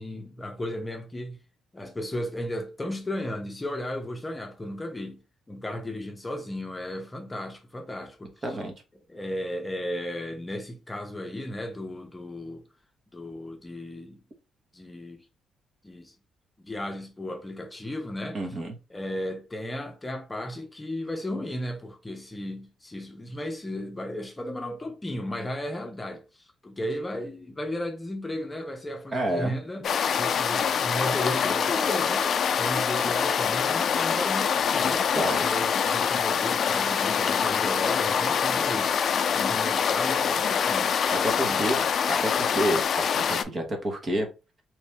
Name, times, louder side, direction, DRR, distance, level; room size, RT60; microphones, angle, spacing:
voice 1, 0.0-1.4 1.7-5.2 5.5-8.3 9.1-12.6 13.1-14.2 14.7-15.2 15.8-16.1 16.6-18.4 18.9-29.9 30.2-32.3 32.6-35.2 35.4-41.7, left 1 dB, 20° left, 0.7 m, -35 dB
voice 2, 8.4-8.7 18.3-18.8 29.1-29.5 35.1-35.5 41.1-41.8 42.1-44.3, right 1 dB, 40° right, 1.1 m, -29 dB
sound 1, 29.8-43.4, left 7 dB, 60° left, 0.4 m, -25 dB
3.1 x 2.5 x 3.4 m
cardioid pair, 90°, 0 cm